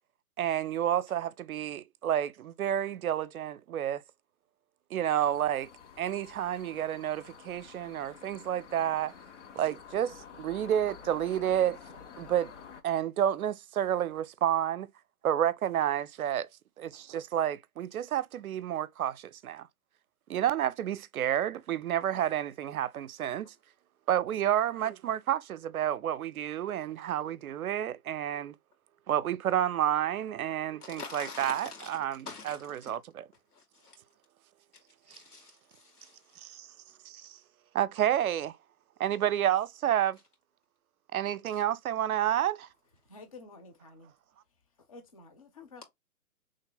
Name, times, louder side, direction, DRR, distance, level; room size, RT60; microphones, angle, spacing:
voice 1, 0.4-4.0 4.9-5.7 6.0-9.1 9.6-11.8 12.2-12.5 12.8-14.9 15.2-16.5 16.8-19.7 20.3-23.5 24.1-28.5 29.1-32.6 32.9-33.0 36.4-36.7 37.1-37.4 37.7-38.6 39.0-40.2 41.1-42.7, right 11 dB, 70° right, 0.5 m, -30 dB
sound 1, 5.1-12.8, left 7 dB, 55° left, 0.8 m, -50 dB
voice 2, 30.8-33.0 33.5-34.0 34.7-36.5 41.5-41.6, left 4 dB, 90° left, 2.0 m, -47 dB
voice 3, 43.0-44.1 44.9-45.8, left 3 dB, 25° left, 0.5 m, -50 dB
3.2 x 2.1 x 3.7 m
hypercardioid pair, 150°, 44 cm